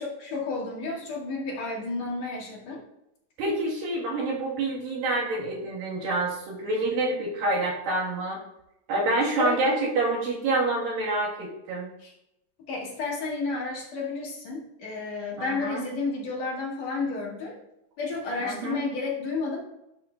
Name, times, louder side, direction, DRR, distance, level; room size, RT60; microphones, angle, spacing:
voice 1, 0.0-2.8 9.2-9.8 12.0-12.1 12.7-17.6 18.0-19.6, left 3 dB, 50° left, -4 dB, 2.9 m, -31 dB
voice 2, 3.4-8.4 8.9-11.9 15.4-15.8 18.4-18.8, right 2 dB, 75° right, -4 dB, 3.7 m, -27 dB
13.0 x 6.5 x 2.6 m, 0.86 s
omnidirectional pair, 4.1 m